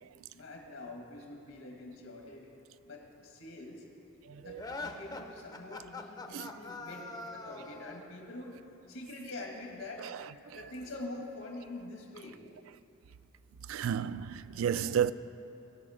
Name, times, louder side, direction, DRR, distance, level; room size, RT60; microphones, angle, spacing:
voice 1, 0.3-2.5 2.9-3.8 4.4-8.6 8.9-10.1 10.5-12.4, left 2 dB, 80° left, 1.9 m, -45 dB
voice 2, 4.2-4.6 6.3-6.6 10.0-10.7 13.6-15.1, right 8 dB, 80° right, 0.3 m, -33 dB
sound 1, 4.6-8.1, left 3 dB, 20° left, 0.5 m, -43 dB
17.5 x 6.5 x 5.0 m
head